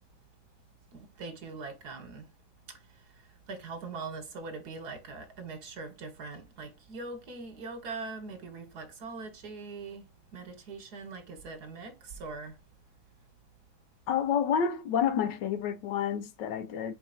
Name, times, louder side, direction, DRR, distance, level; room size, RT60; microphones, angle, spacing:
voice 1, 0.9-2.3 2.7-10.1 10.3-12.6, right 4 dB, 65° right, 1.7 m, -42 dB
voice 2, 14.1-16.9, left 8 dB, 75° left, 1.3 m, -29 dB
4.7 x 4.0 x 2.7 m
omnidirectional pair, 1.9 m